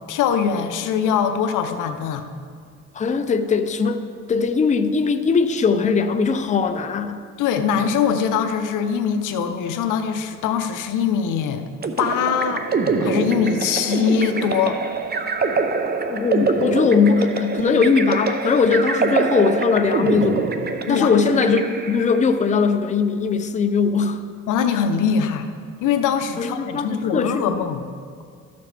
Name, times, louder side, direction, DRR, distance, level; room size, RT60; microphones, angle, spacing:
voice 1, 0.1-2.3 7.4-11.6 12.0-12.7 13.0-14.8 20.9-21.2 24.5-25.5 25.8-27.8, left 7 dB, 85° left, 8 dB, 0.7 m, -22 dB
voice 2, 2.9-4.0 4.3-7.2 16.1-20.5 20.9-21.6 21.9-24.2 26.4-27.6, left 5 dB, 25° left, 7 dB, 0.5 m, -20 dB
sound 1, 11.8-22.3, right 4 dB, 30° right, 0.6 m, -24 dB
13.5 x 6.8 x 3.3 m, 2.1 s
cardioid pair, 90°, 30 cm